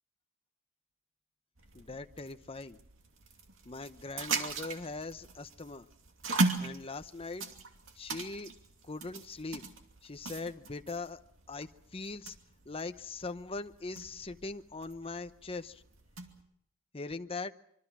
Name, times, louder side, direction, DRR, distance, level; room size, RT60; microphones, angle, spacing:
sound 1, 1.6-16.4, right 3 dB, 70° right, 2.6 m, -39 dB
voice 1, 1.7-2.8 3.6-5.9 6.6-7.4 8.0-8.5 8.8-9.6 10.0-11.2 11.5-12.4 12.6-15.8 16.9-17.5, left 3 dB, 30° left, 10 dB, 0.8 m, -41 dB
25.5 x 24.0 x 6.1 m, 0.72 s
head